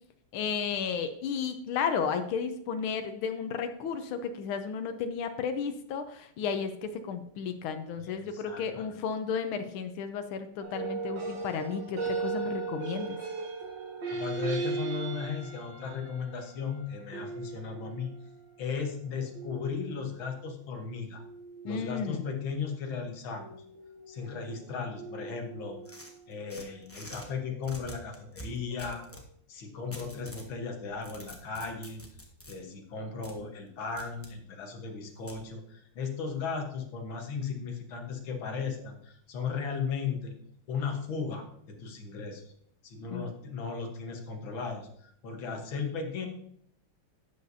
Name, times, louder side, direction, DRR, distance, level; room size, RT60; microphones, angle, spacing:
voice 1, 0.3-13.2 21.6-22.3 43.1-43.2, left 6 dB, 90° left, 8 dB, 1.6 m, -33 dB
voice 2, 8.0-9.0 14.1-18.1 18.6-21.2 21.6-23.6 24.1-25.8 26.3-29.0 29.5-32.0 32.5-40.3 40.7-42.4 42.8-46.3, left 5 dB, 75° left, 4 dB, 2.1 m, -36 dB
sound 1, 10.6-18.4 19.3-20.2 21.2-22.1 23.4-26.2 27.1-28.4 28.7-29.2, right 4 dB, 60° right, 2.2 m, -38 dB
sound 2, 25.9-27.3 27.6-29.3 29.9-30.5 30.9-32.6 33.2-33.4 34.0-34.3 35.3-35.4, equal, 10° left, 0.7 m, -46 dB
11.5 x 8.3 x 2.7 m, 0.68 s
omnidirectional pair, 2.2 m